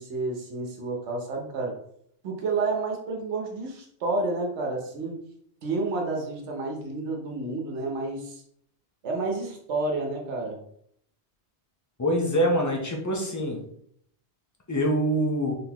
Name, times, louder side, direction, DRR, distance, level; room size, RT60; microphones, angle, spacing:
voice 1, 0.0-1.8 2.2-5.2 5.6-8.4 9.0-10.6, right 3 dB, 85° right, 1 dB, 1.2 m, -30 dB
voice 2, 12.0-13.6 14.7-15.6, equal, 20° left, 0 dB, 0.7 m, -25 dB
3.9 x 3.5 x 2.9 m, 0.68 s
omnidirectional pair, 1.1 m